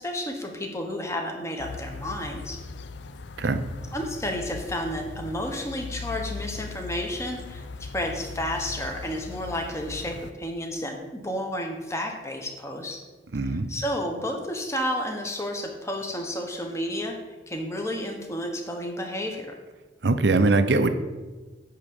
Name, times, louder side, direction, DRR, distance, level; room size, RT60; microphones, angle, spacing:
voice 1, 0.0-2.6 3.9-13.0 13.4-17.2 17.5-19.5, equal, 15° left, 2 dB, 1.1 m, -31 dB
sound 1, 1.6-10.3, left 4 dB, 65° left, 0.5 m, -39 dB
voice 2, 13.3-13.7 20.0-20.9, right 3 dB, 65° right, 10 dB, 0.6 m, -21 dB
10.0 x 3.7 x 7.1 m, 1.2 s
head